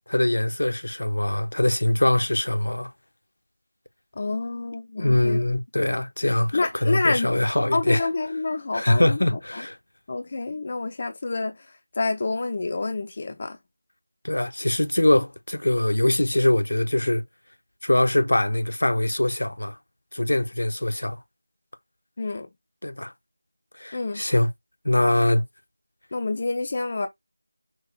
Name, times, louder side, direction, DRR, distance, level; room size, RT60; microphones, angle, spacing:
voice 1, 0.1-2.9 5.0-8.1 8.7-9.8 14.2-17.2 17.8-19.7 20.1-21.2 22.8-23.1 23.8-24.5 24.8-25.4, left 1 dB, 70° left, 1.0 m, -23 dB
voice 2, 4.2-5.4 6.5-7.3 7.7-9.4 10.1-11.6 12.0-13.6 22.2-22.5 23.9-24.2 26.1-27.1, left 3 dB, 30° left, 0.7 m, -27 dB
6.3 x 2.4 x 3.2 m
figure-of-eight pair, 175°, 0 cm